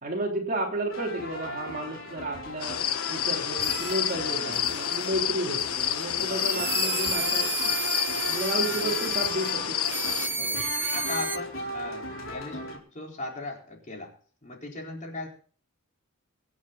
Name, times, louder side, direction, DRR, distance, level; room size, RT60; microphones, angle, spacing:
voice 1, 0.0-2.8 3.1-7.7 8.3-9.8 10.5-10.7, right 1 dB, 40° right, 1 dB, 3.3 m, -32 dB
sound 1, 0.9-12.8, left 1 dB, 60° left, 4.1 m, -38 dB
sound 2, 2.6-10.3, left 9 dB, 80° left, 1.2 m, -29 dB
sound 3, 3.6-4.1 4.5-5.1 5.6-9.5 9.8-11.4, right 3 dB, 10° right, 0.6 m, -32 dB
voice 2, 4.3-4.7 6.2-6.7 8.7-9.0 10.3-10.6 10.9-14.1 14.4-15.3, left 2 dB, 35° left, -1 dB, 4.6 m, -39 dB
25.0 x 8.6 x 4.2 m, 0.43 s
head